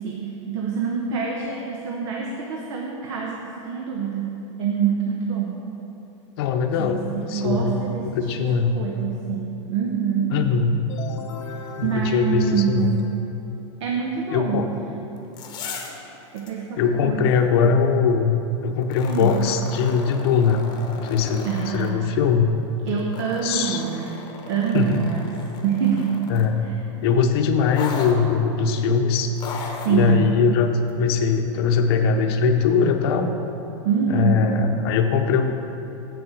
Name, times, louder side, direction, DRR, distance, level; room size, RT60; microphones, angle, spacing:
voice 1, 0.0-5.6 6.8-10.4 11.4-12.9 13.8-14.7 16.3-17.5 19.0-19.4 21.4-22.2 22.9-26.2 26.6-26.9 29.8-30.3 33.8-34.6, right 7 dB, 70° right, -1 dB, 1.1 m, -26 dB
voice 2, 6.4-7.0 7.3-8.8 10.3-10.7 11.8-13.0 14.3-14.7 16.8-18.3 18.6-20.6 20.9-22.5 23.4-23.8 24.7-25.0 26.3-26.7 27.0-29.3 29.9-33.3 34.1-35.5, left 6 dB, 55° left, 6 dB, 0.8 m, -21 dB
sound 1, 10.9-13.6, left 6 dB, 90° left, 0.9 m, -39 dB
sound 2, 15.2-16.0 16.4-16.5 18.8-21.9 22.9-26.5 27.7-28.2 29.4-30.0 30.9-31.0, left 4 dB, 25° left, 0.9 m, -37 dB
7.9 x 6.9 x 6.2 m, 3.0 s
supercardioid pair, 155°, 16 cm